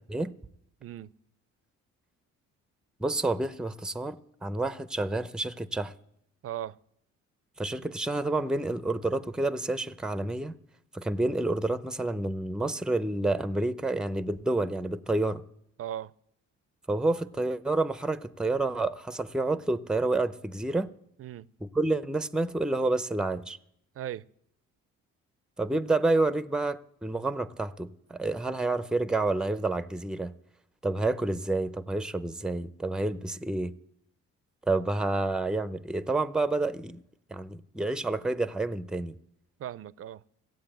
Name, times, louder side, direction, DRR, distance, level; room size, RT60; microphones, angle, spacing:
voice 1, 0.8-1.1 6.4-6.8 15.8-16.1 21.2-21.5 23.9-24.2 39.6-40.2, right 11 dB, 50° right, 0.5 m, -37 dB
voice 2, 3.0-4.2 4.4-5.9 7.6-10.6 10.9-15.4 16.9-20.9 21.6-23.6 25.6-30.3 30.8-33.7 34.7-37.0 37.3-39.1, right 2 dB, ahead, 0.6 m, -29 dB
16.0 x 7.6 x 8.9 m
cardioid pair, 90°, 30 cm